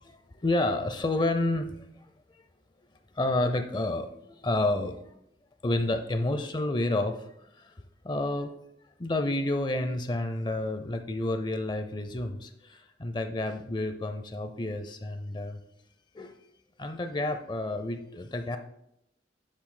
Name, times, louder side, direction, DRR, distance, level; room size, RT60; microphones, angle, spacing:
voice 1, 0.0-2.4 3.1-5.0 5.6-8.5 9.0-15.6 16.1-16.4 16.8-18.6, left 2 dB, 25° left, 8 dB, 0.5 m, -30 dB
10.5 x 7.4 x 2.2 m, 0.78 s
head